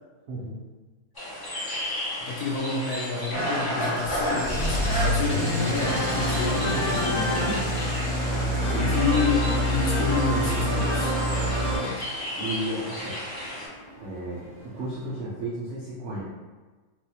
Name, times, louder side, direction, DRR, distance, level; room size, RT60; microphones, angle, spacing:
voice 1, 0.3-0.6 8.7-9.0 12.4-13.2 14.0-16.2, right 1 dB, 60° right, -8 dB, 0.8 m, -33 dB
sound 1, 1.1-13.7, left 1 dB, 30° left, 0.4 m, -36 dB
voice 2, 2.3-7.6 8.6-11.2, left 4 dB, 75° left, -2 dB, 1.0 m, -29 dB
Engine starting / Idling, 3.3-11.8, equal, 15° left, 0.9 m, -26 dB
sound 2, 5.8-15.2, equal, 50° left, 1.0 m, -32 dB
3.9 x 2.4 x 2.8 m, 1.3 s
omnidirectional pair, 1.7 m